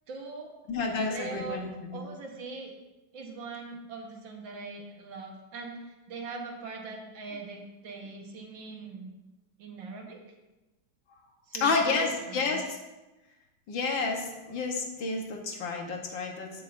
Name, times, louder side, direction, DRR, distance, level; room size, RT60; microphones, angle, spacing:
voice 1, 0.1-0.6 0.8-1.6 1.9-2.7 3.1-9.1 9.6-10.2 11.5-12.6, right 4 dB, 70° right, 1 dB, 1.9 m, -41 dB
voice 2, 0.7-2.0 11.6-12.8 13.7-16.5, left 4 dB, 70° left, 2 dB, 1.8 m, -30 dB
14.5 x 6.4 x 2.6 m, 1.1 s
omnidirectional pair, 2.2 m